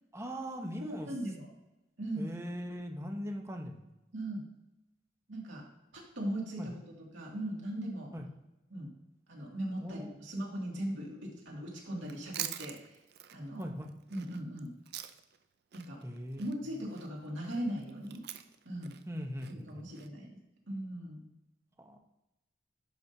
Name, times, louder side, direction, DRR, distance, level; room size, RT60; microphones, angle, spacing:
voice 1, 0.1-1.1 2.2-3.8 6.6-6.7 8.1-8.3 9.8-10.1 13.6-13.9 16.0-16.4 19.1-19.8 21.8-22.0, equal, 15° right, 3 dB, 0.8 m, -40 dB
voice 2, 0.8-1.5 2.0-2.3 4.1-4.4 5.3-5.6 5.9-6.8 7.1-8.1 8.7-8.9 9.3-13.0 13.3-13.7 14.1-14.7 15.7-16.0 16.4-18.2 18.6-19.0 19.6-20.4 20.7-21.3, right 1 dB, 85° right, -2 dB, 2.3 m, -39 dB
Chewing mastication, 12.0-15.4 15.7-20.1, right 12 dB, 55° right, 0.4 m, -45 dB
11.0 x 6.0 x 2.7 m, 0.97 s
head